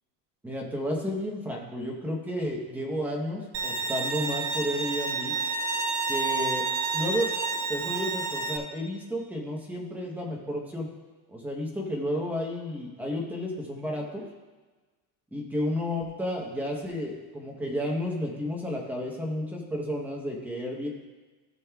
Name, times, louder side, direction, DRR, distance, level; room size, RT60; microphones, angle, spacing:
voice 1, 0.4-5.3 6.1-6.6 6.9-7.3 7.7-10.9 11.3-14.3 15.3-20.9, equal, 5° right, -1 dB, 0.8 m, -32 dB
Bowed string instrument, 3.5-8.6, right 4 dB, 45° right, 0.7 m, -29 dB
16.0 x 6.3 x 2.3 m, 1.3 s
cardioid pair, 180°, 44 cm